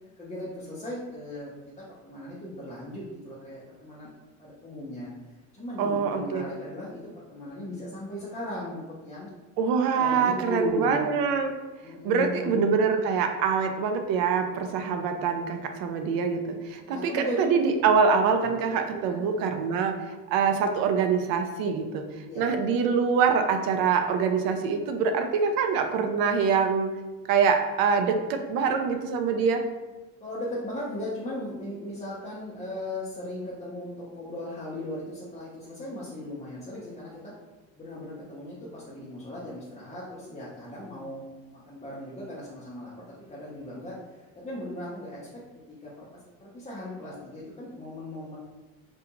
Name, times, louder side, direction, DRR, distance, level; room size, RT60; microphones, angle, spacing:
voice 1, 0.2-1.5 1.8-4.1 4.4-5.1 5.5-9.3 9.9-11.0 11.8-12.6 16.8-17.5 18.6-19.3 22.3-22.5 30.2-37.3 37.8-41.3 41.5-45.2 45.7-46.0 46.4-48.4, left 1 dB, 15° left, -8 dB, 0.6 m, -37 dB
voice 2, 5.8-6.4 9.6-11.5 12.0-19.9 20.3-22.0 22.4-26.9 27.3-29.6, right 6 dB, 60° right, 6 dB, 0.5 m, -24 dB
2.4 x 2.3 x 2.8 m, 1.2 s
supercardioid pair, 80°, 40 cm